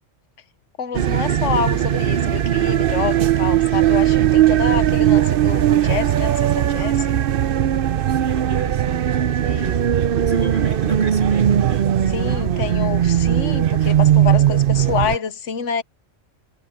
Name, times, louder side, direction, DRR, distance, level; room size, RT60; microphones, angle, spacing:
voice 1, 0.8-7.2 9.4-9.8 12.1-15.8, left 7 dB, 70° left, 1.3 m, -27 dB
sound 1, 0.9-15.2, right 11 dB, 55° right, 0.7 m, -18 dB
voice 2, 8.1-9.1 9.4-12.2, right 5 dB, 70° right, 4.2 m, -34 dB
omnidirectional pair, 1.3 m